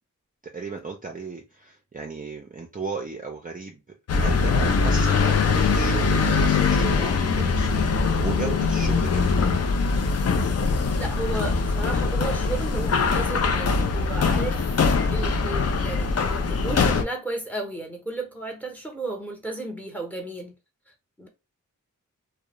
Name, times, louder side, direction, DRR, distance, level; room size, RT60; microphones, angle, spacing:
voice 1, 0.5-3.8 4.1-7.7 8.2-9.4, right 4 dB, 25° right, 0.5 m, -35 dB
sound 1, 4.1-17.0, left 4 dB, 50° left, 0.4 m, -22 dB
voice 2, 11.0-14.7 15.1-20.5 21.2-21.3, right 2 dB, 5° left, 0.8 m, -34 dB
2.4 x 2.1 x 3.0 m
wide cardioid pair, 90°, 33 cm